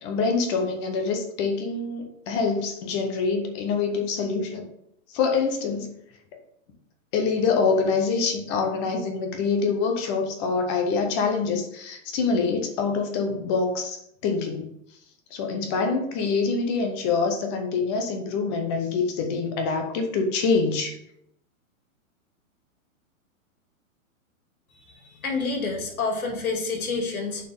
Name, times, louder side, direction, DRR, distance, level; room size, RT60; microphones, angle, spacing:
voice 1, 0.0-4.7 5.1-5.9 7.1-14.7 15.3-21.0, left 4 dB, 20° left, 5 dB, 0.6 m, -25 dB
voice 2, 24.9-27.4, left 4 dB, 90° left, 2 dB, 2.4 m, -28 dB
9.0 x 4.4 x 3.5 m, 0.76 s
hypercardioid pair, 155°, 41 cm